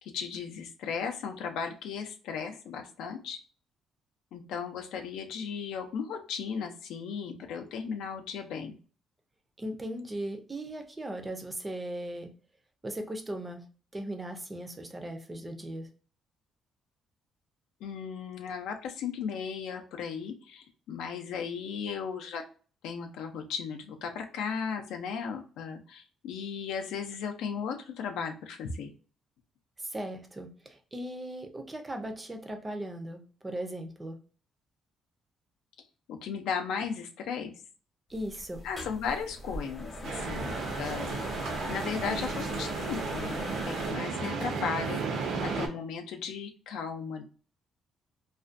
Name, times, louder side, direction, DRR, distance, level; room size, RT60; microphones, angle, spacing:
voice 1, 0.0-3.4 4.3-8.8 17.8-22.4 22.8-28.9 36.1-37.5 38.6-47.2, left 6 dB, 90° left, 5 dB, 0.4 m, -36 dB
voice 2, 9.6-12.3 12.8-13.6 13.9-15.9 29.8-34.2 38.1-38.6, right 1 dB, 15° right, 5 dB, 0.4 m, -38 dB
sound 1, 38.1-43.9, left 1 dB, 25° left, 0.6 m, -40 dB
sound 2, 40.0-45.7, right 4 dB, 80° right, 0.5 m, -34 dB
2.4 x 2.1 x 2.4 m, 0.39 s
cardioid pair, 135°, 0 cm